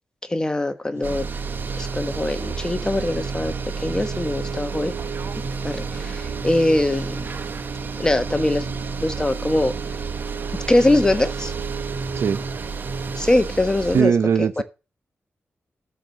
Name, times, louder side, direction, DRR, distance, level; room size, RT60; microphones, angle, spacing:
voice 1, 0.3-1.2 1.7-4.9 5.6-7.2 8.0-8.7 9.0-9.7 10.7-11.5 13.2-14.1 14.4-14.6, left 1 dB, 15° left, 1.2 m, -22 dB
sound 1, 0.9-13.2, right 4 dB, 70° right, 2.1 m, -35 dB
sound 2, 1.0-14.0, right 5 dB, 50° right, 0.9 m, -31 dB
voice 2, 13.9-14.6, right 7 dB, 90° right, 0.8 m, -19 dB
12.5 x 4.6 x 6.6 m
wide cardioid pair, 140°, 4 cm